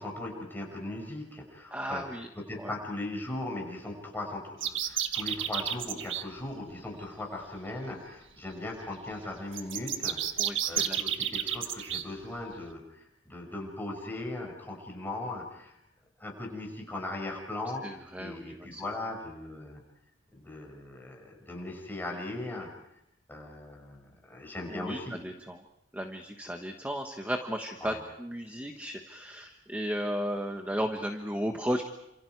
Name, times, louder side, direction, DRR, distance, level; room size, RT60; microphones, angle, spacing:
voice 1, 0.0-10.2 10.7-15.8 16.2-17.8 18.2-19.8 20.3-22.7 23.3-25.2 27.8-28.0, left 2 dB, 10° left, 0 dB, 6.0 m, -38 dB
voice 2, 1.7-2.3 2.6-2.7 10.4-11.3 17.8-18.8 24.7-25.6 25.9-31.9, equal, 10° right, 4 dB, 1.4 m, -35 dB
sound 1, 4.6-6.2 9.5-12.0, right 10 dB, 70° right, 1.6 m, -31 dB
29.5 x 27.5 x 4.8 m, 0.82 s
head